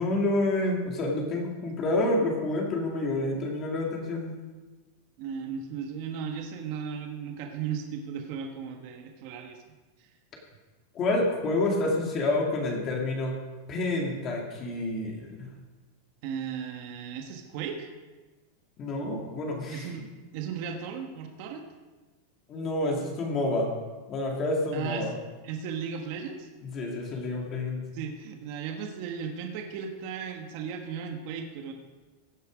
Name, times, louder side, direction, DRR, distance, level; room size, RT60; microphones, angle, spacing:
voice 1, 0.0-4.3 10.9-13.4 13.7-15.5 18.8-19.9 22.5-23.7 24.1-25.1 26.6-27.9, left 2 dB, 25° left, 0 dB, 2.2 m, -28 dB
voice 2, 5.2-9.6 10.0-10.1 16.2-17.9 19.7-20.0 20.3-21.6 24.7-25.2 25.4-26.5 27.9-31.7, right 7 dB, 45° right, 3 dB, 1.3 m, -36 dB
15.5 x 9.6 x 5.1 m, 1.3 s
supercardioid pair, 165°, 0 cm